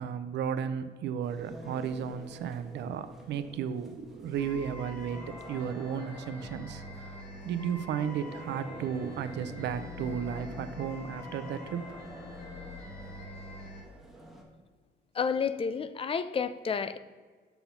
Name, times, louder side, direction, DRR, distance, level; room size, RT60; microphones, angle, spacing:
voice 1, 0.0-7.2 7.4-12.0, right 8 dB, 75° right, 11 dB, 0.5 m, -34 dB
sound 1, 1.2-14.4, right 1 dB, ahead, 1.2 m, -48 dB
sound 2, 4.3-13.8, left 2 dB, 55° left, 1.9 m, -45 dB
voice 2, 15.1-17.0, left 6 dB, 30° left, 13 dB, 0.4 m, -30 dB
6.8 x 4.1 x 5.7 m, 1.5 s
cardioid pair, 120°, 18 cm